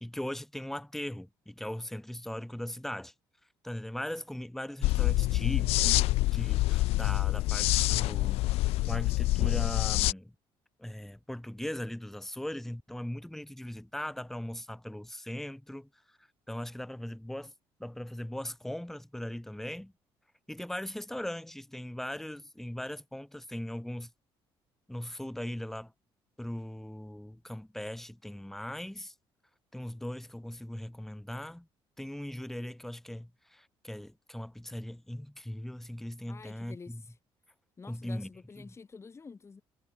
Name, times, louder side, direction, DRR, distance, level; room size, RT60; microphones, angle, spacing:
voice 1, 0.0-3.1 3.6-8.6 8.9-10.3 10.8-16.2 16.5-17.5 17.8-19.9 20.5-24.1 24.9-25.9 26.4-29.1 29.7-31.7 32.0-37.0 37.9-38.3 38.6-38.7, left 1 dB, 5° left, 1.5 m, -39 dB
sound 1, 4.8-10.1, left 18 dB, 85° left, 0.4 m, -26 dB
voice 2, 36.3-37.2 37.8-39.6, left 4 dB, 25° left, 7.5 m, -49 dB
cardioid pair, 120°, 10 cm